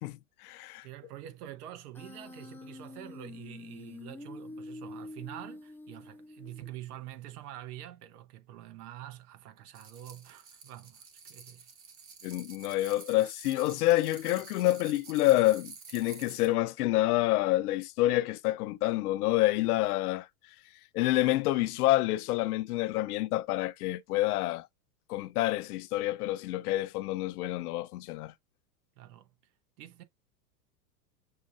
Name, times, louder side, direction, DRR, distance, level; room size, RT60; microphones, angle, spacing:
voice 1, 0.0-0.9 12.2-20.3 20.9-24.7 25.1-28.3, left 16 dB, 65° left, 0.6 m, -28 dB
voice 2, 0.8-11.6 29.0-29.3 29.8-30.0, right 13 dB, 65° right, 1.0 m, -46 dB
Human voice, 1.9-6.9, left 2 dB, 5° left, 0.4 m, -46 dB
sound 1, 9.7-16.5, right 5 dB, 25° right, 1.0 m, -50 dB
6.4 x 2.2 x 2.6 m
hypercardioid pair, 105°, 50 cm